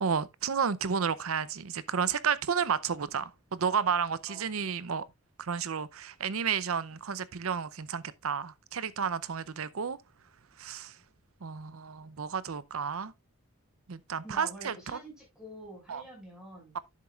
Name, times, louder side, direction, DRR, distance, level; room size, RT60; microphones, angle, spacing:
voice 1, 0.0-5.1 5.4-10.0 10.6-11.0 11.4-13.1 13.9-15.0 15.9-16.0, right 6 dB, 85° right, 0.6 m, -32 dB
voice 2, 14.2-16.8, right 1 dB, 5° right, 6.0 m, -47 dB
11.0 x 7.4 x 2.4 m
head